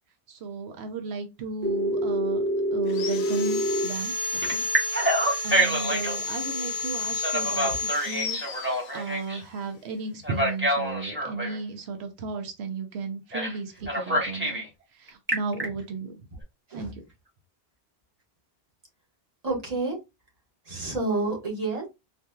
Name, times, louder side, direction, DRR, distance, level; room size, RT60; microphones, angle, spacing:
voice 1, 0.3-2.4 2.7-4.6 5.4-14.6 14.9-16.3 16.7-16.9, right 4 dB, 85° right, 0.9 m, -35 dB
Telephone, 1.6-3.9 4.4-6.2 7.1-9.4 10.2-11.6 13.3-13.6 13.9-14.7 15.1-15.6, right 1 dB, 10° right, 1.2 m, -26 dB
Sawing, 2.9-9.3, left 3 dB, 80° left, 0.8 m, -32 dB
voice 2, 7.4-7.9 16.7-16.9 19.4-20.0 20.6-21.9, right 3 dB, 40° right, 1.4 m, -30 dB
4.2 x 2.6 x 2.2 m
omnidirectional pair, 1.1 m